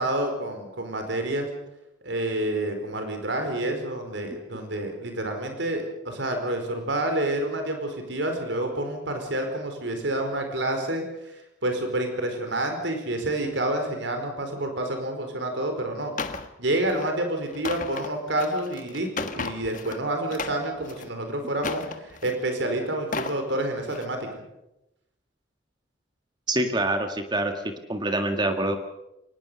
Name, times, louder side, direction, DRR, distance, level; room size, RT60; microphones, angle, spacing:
voice 1, 0.0-1.5 2.0-11.0 11.6-16.1 16.6-24.4, right 1 dB, 75° right, 5 dB, 4.8 m, -28 dB
sound 1, 16.2-16.5 16.9-17.1 17.5-20.0 20.3-21.1 21.6-22.4 22.9-23.4 23.8-24.1, left 4 dB, 45° left, 1.5 m, -34 dB
voice 2, 26.5-27.5 27.9-28.8, right 1 dB, 25° right, 6 dB, 1.8 m, -25 dB
24.0 x 20.0 x 7.0 m, 0.90 s
head